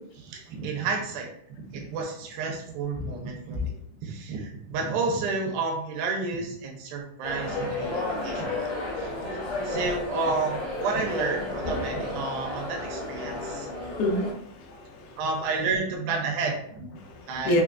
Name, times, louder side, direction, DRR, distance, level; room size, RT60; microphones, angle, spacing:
voice 1, 0.2-1.3 1.7-3.7 4.0-8.7 9.0-13.7 15.2-16.9 17.3-17.6, right 4 dB, 85° right, 2 dB, 2.4 m, -31 dB
sound 1, 7.2-14.3, left 2 dB, 55° left, 1.4 m, -32 dB
voice 2, 13.8-15.2 17.0-17.6, left 1 dB, 85° left, 1 dB, 2.6 m, -28 dB
6.0 x 2.4 x 2.3 m, 0.68 s
omnidirectional pair, 4.2 m